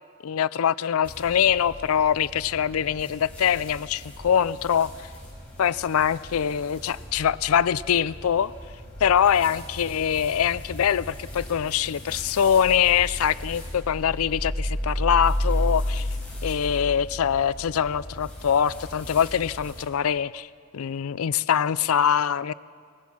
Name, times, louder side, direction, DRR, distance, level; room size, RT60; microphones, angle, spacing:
voice 1, 0.2-4.9 5.6-8.5 9.0-16.1 16.4-20.5 20.7-22.5, left 8 dB, 90° left, 18 dB, 0.4 m, -23 dB
sound 1, 1.0-19.8, equal, 5° left, 4.9 m, -34 dB
23.0 x 19.0 x 6.1 m, 2.1 s
head